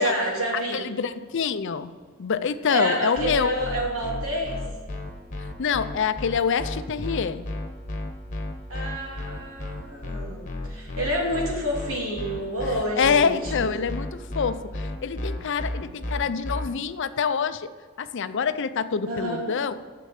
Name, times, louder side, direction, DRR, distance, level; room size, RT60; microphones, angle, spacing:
voice 1, 0.0-0.8 2.7-4.6 8.7-13.7 19.1-19.6, right 1 dB, 75° right, -3 dB, 2.9 m, -28 dB
voice 2, 0.5-1.9 2.2-3.6 5.6-7.5 13.0-17.7 18.0-19.7, left 6 dB, 60° left, 12 dB, 0.5 m, -26 dB
sound 1, 3.2-16.7, left 1 dB, 35° left, 1.3 m, -32 dB
7.7 x 6.5 x 7.9 m, 1.6 s
head